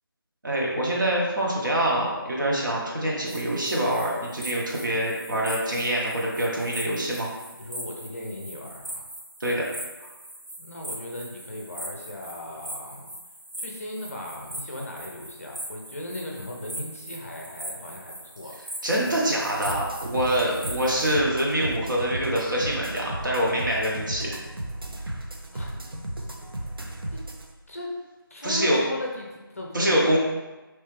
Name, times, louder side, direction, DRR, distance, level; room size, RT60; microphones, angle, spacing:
voice 1, 0.4-7.3 9.4-9.6 18.8-24.4 28.4-28.8 29.7-30.2, right 1 dB, 55° right, -3 dB, 1.0 m, -25 dB
sound 1, 3.3-21.2, right 1 dB, 25° right, 0.3 m, -40 dB
voice 2, 7.6-9.0 10.6-13.1 13.6-18.6 25.5-25.8 27.1-27.2 27.7-27.9 28.3-30.2, left 1 dB, 40° left, -1 dB, 0.5 m, -37 dB
sound 2, 19.7-27.5, right 1 dB, 70° right, 0.6 m, -35 dB
3.2 x 3.1 x 3.2 m, 1.1 s
figure-of-eight pair, 165°, 12 cm